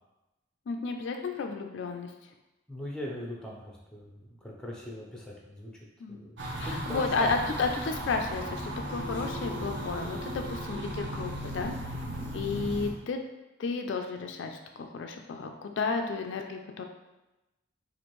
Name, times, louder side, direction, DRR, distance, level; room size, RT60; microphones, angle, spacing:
voice 1, 0.7-2.1 6.0-6.2 6.6-11.9 12.3-13.2 13.6-16.8, left 4 dB, 65° left, 4 dB, 0.3 m, -32 dB
voice 2, 2.7-5.7 6.1-7.4 12.0-12.4, equal, 5° left, -2 dB, 0.5 m, -40 dB
sound 1, 6.4-12.9, right 1 dB, 60° right, 0.6 m, -36 dB
4.2 x 2.6 x 3.0 m, 1.0 s
head